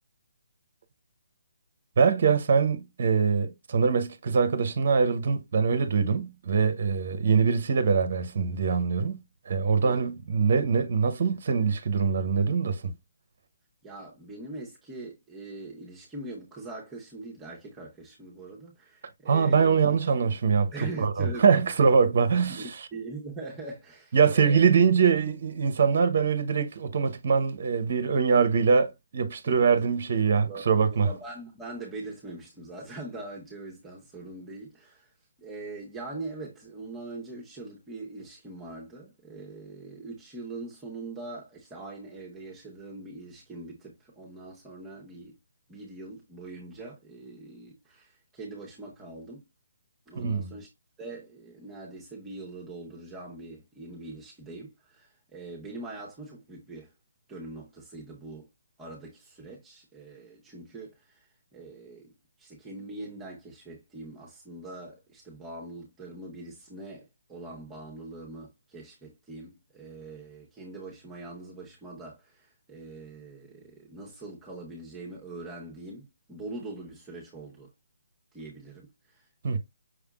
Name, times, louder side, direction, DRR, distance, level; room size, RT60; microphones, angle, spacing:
voice 1, 2.0-12.9 19.3-20.7 21.0-22.7 24.1-31.1 50.2-50.5 79.4-79.6, right 5 dB, 50° right, 0.9 m, -23 dB
voice 2, 13.8-19.8 20.7-21.5 22.4-24.7 29.4-29.6 30.4-35.1 35.4-45.4 45.7-49.5 50.1-50.7 51.0-56.9 57.3-58.5 58.8-77.7 78.3-79.6, right 2 dB, 10° right, 1.3 m, -42 dB
6.3 x 3.5 x 2.4 m
figure-of-eight pair, 140°, 0 cm